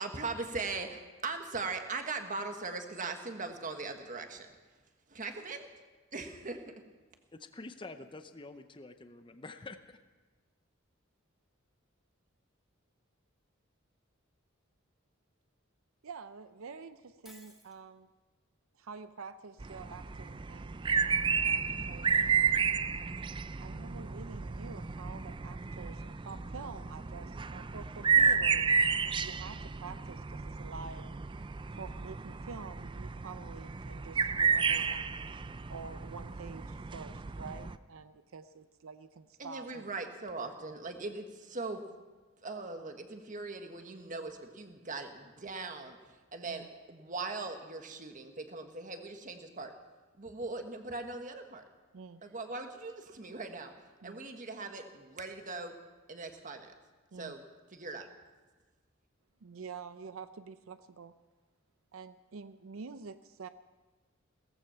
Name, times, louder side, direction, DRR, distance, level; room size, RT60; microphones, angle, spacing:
voice 1, 0.0-4.5 5.1-5.7 6.1-6.6 39.4-41.8 42.4-49.7 50.2-51.6 52.2-53.7 54.0-55.7 56.1-56.7 57.2-57.4 57.7-58.0, right 3 dB, 40° right, 6 dB, 1.5 m, -40 dB
voice 2, 7.3-10.0, left 3 dB, 25° left, 9 dB, 0.6 m, -47 dB
voice 3, 16.0-18.1 18.8-22.4 23.6-31.1 31.8-35.2 35.7-39.9 46.4-46.7 51.9-52.2 54.0-54.2 57.1-57.3 59.4-61.1 61.9-63.5, right 5 dB, 80° right, 11 dB, 0.6 m, -48 dB
Shatter, 17.2-17.8, equal, ahead, 1.6 m, -56 dB
sound 1, 19.6-37.8, right 6 dB, 25° right, 0.4 m, -32 dB
17.0 x 14.5 x 5.7 m, 1.3 s
head